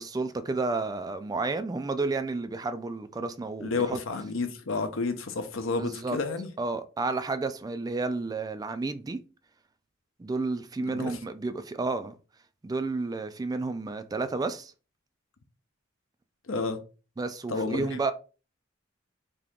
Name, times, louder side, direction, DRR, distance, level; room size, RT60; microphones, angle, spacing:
voice 1, 0.0-4.0 5.8-6.2 6.6-9.2 10.2-12.2 12.6-14.7 17.2-18.1, right 3 dB, 20° right, 0.3 m, -31 dB
voice 2, 3.6-6.5 10.8-11.2 16.5-16.8 17.5-18.0, left 3 dB, 80° left, 0.7 m, -31 dB
3.6 x 2.8 x 3.5 m
head